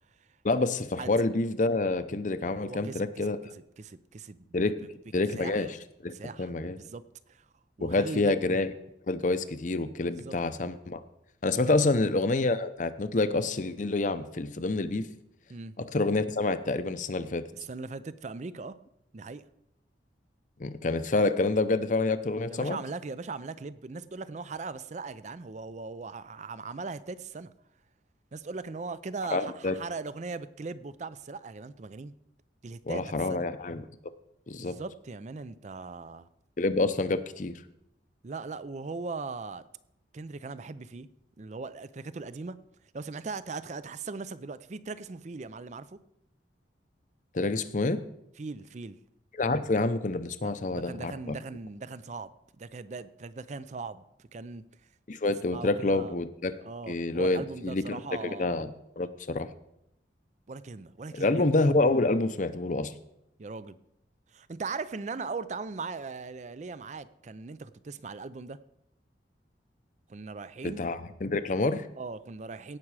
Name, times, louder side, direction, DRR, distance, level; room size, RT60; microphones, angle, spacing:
voice 1, 0.4-3.4 4.5-4.7 5.1-5.8 6.0-6.1 6.4-6.8 7.8-8.7 9.1-11.0 11.4-15.1 15.8-17.4 20.6-22.8 29.3-29.8 32.9-33.8 34.5-34.8 36.6-37.6 47.3-48.0 49.3-51.3 55.1-58.7 59.0-59.5 61.1-62.9 70.6-71.9, left 2 dB, 45° left, 12 dB, 0.6 m, -27 dB
voice 2, 2.6-3.1 3.5-4.9 5.3-5.6 6.1-6.5 6.8-7.0 7.3-7.5 7.8-8.4 10.1-10.4 11.5-12.1 15.5-15.7 17.5-18.8 19.1-19.5 22.5-27.5 28.3-32.1 32.6-33.5 34.6-36.3 38.2-39.6 40.1-41.1 41.4-42.6 42.9-46.0 48.4-49.0 50.4-52.3 52.6-54.7 55.5-56.1 56.6-58.5 60.5-61.4 63.4-63.8 64.3-68.6 70.1-70.8 72.0-72.8, right 4 dB, 40° right, 15 dB, 0.4 m, -39 dB
17.5 x 6.0 x 4.8 m, 0.80 s
head